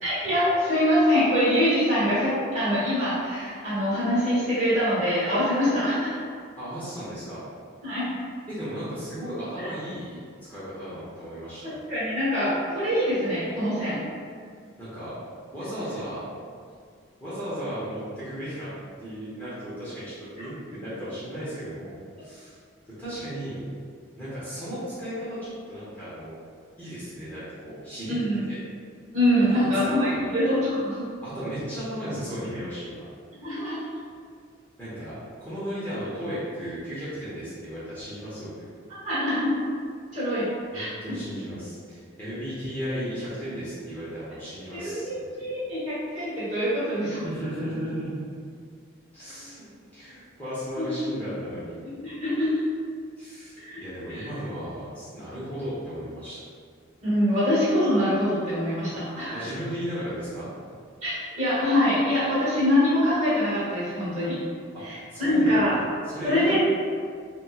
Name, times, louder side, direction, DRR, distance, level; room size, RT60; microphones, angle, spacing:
voice 1, 0.0-6.1 7.8-8.2 9.6-9.7 11.6-14.0 20.4-20.5 28.1-28.5 29.1-31.1 33.4-33.8 39.0-39.7 40.1-40.5 40.7-41.2 44.7-47.3 50.8-50.9 52.0-52.5 53.6-53.8 54.1-54.3 57.0-59.4 61.0-64.4 64.8-65.7 66.2-66.6, equal, 35° right, -11 dB, 1.3 m, -24 dB
voice 2, 6.6-7.4 8.5-10.2 10.5-11.8 14.8-15.1 15.5-16.3 17.2-18.7 19.0-22.6 22.8-23.6 24.2-26.3 26.8-28.2 28.5-28.6 29.5-30.3 31.2-33.1 34.8-35.1 35.4-38.5 40.7-45.4 47.2-48.1 49.1-49.6 49.9-51.8 53.2-56.4 59.3-60.5 64.7-64.8 65.1-65.8 66.1-66.6, equal, 10° left, -13 dB, 0.7 m, -35 dB
4.1 x 2.1 x 2.3 m, 2.1 s
head